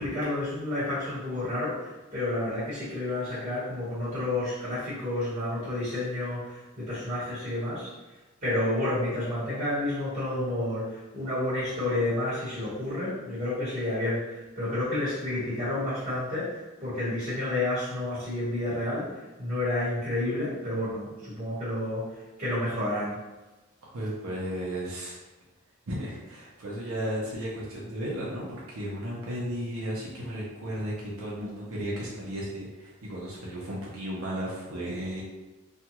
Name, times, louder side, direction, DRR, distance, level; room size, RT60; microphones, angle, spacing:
voice 1, 0.0-7.9 8.4-23.2, left 1 dB, 40° right, -11 dB, 1.2 m, -30 dB
voice 2, 23.8-25.2 25.9-35.2, equal, 85° right, -5 dB, 0.7 m, -34 dB
2.5 x 2.3 x 2.9 m, 1.2 s
head